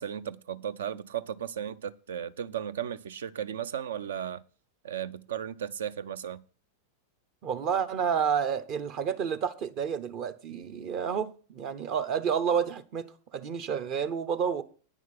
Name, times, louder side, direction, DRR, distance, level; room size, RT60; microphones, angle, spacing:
voice 1, 0.0-4.4 4.8-6.4, right 9 dB, 60° right, 0.7 m, -35 dB
voice 2, 7.4-14.6, right 7 dB, 40° right, 1.0 m, -30 dB
9.9 x 6.4 x 7.3 m
figure-of-eight pair, 90°, 0 cm